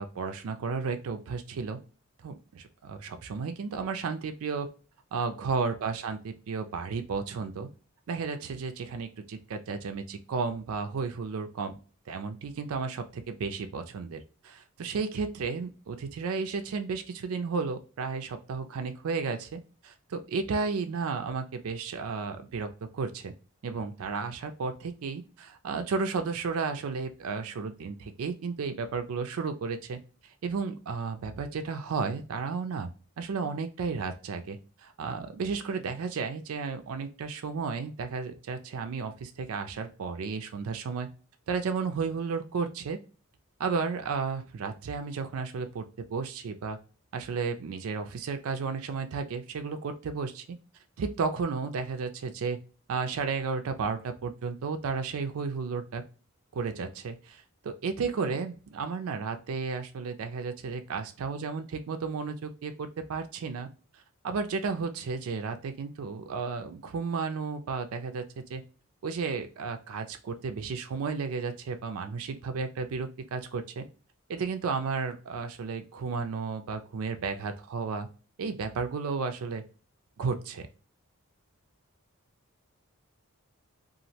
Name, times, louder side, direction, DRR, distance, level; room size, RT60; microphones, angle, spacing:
voice 1, 0.0-1.8 2.2-4.7 5.1-7.7 8.1-11.8 12.1-23.3 23.6-32.9 33.2-41.1 41.5-43.0 43.6-46.8 47.1-50.4 51.0-52.6 52.9-56.0 56.5-63.7 63.9-68.6 69.0-73.9 74.3-78.1 78.4-79.6 80.2-80.7, right 5 dB, 80° right, 7 dB, 0.4 m, -33 dB
3.0 x 2.4 x 2.7 m, 0.36 s
head